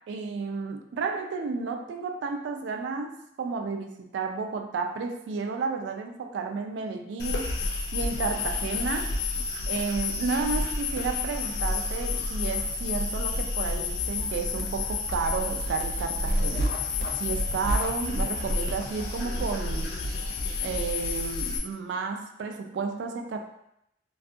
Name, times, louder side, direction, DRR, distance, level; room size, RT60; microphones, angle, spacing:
voice 1, 0.1-7.5 7.9-9.1 9.7-16.7 17.2-19.9 20.6-23.4, right 4 dB, 80° right, 4 dB, 0.3 m, -32 dB
sound 1, 7.2-21.6, left 3 dB, 60° left, 0.3 m, -29 dB
2.5 x 2.4 x 2.5 m, 0.78 s
head